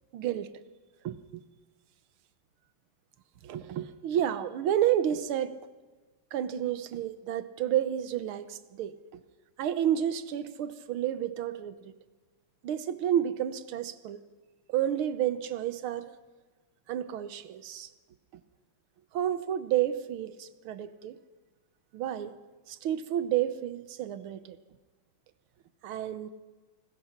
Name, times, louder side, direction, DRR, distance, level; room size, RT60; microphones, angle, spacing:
voice 1, 0.1-0.5 1.0-1.4 3.4-5.6 6.3-9.2 9.6-11.7 12.6-14.2 14.7-16.1 16.9-17.9 19.1-21.2 21.9-22.4 22.7-24.6 25.8-26.3, right 10 dB, 75° right, 1.8 m, -30 dB
27.5 x 20.0 x 5.9 m
omnidirectional pair, 2.4 m